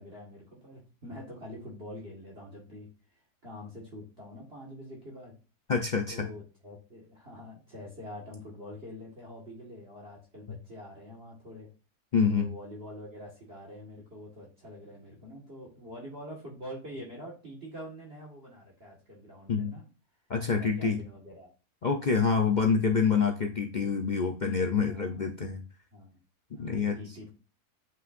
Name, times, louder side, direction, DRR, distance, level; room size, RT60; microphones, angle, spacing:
voice 1, 0.0-2.9 3.4-5.3 6.1-11.7 12.3-19.8 20.5-21.5 22.2-22.7 24.4-25.1 25.9-26.2 26.5-27.3, left 1 dB, 40° right, -3 dB, 1.9 m, -45 dB
voice 2, 5.7-6.3 12.1-12.5 19.5-19.7 20.3-21.0 21.8-25.6 26.6-27.0, left 5 dB, 70° left, 4 dB, 0.4 m, -26 dB
7.7 x 5.6 x 2.5 m, 0.34 s
omnidirectional pair, 1.7 m